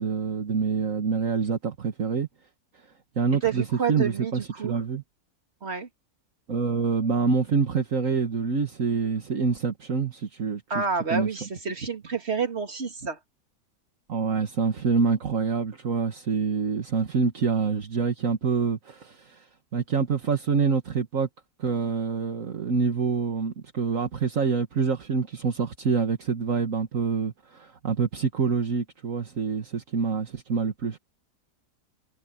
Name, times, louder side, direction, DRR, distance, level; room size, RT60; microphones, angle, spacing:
voice 1, 0.0-2.3 3.2-5.0 6.5-10.8 11.1-11.3 14.1-19.5 19.7-21.3 21.6-31.0, right 5 dB, 60° right, 2.0 m, -26 dB
voice 2, 3.4-4.8 5.6-5.9 10.7-13.2, right 6 dB, 45° right, 2.7 m, -29 dB
omnidirectional pair, 1.6 m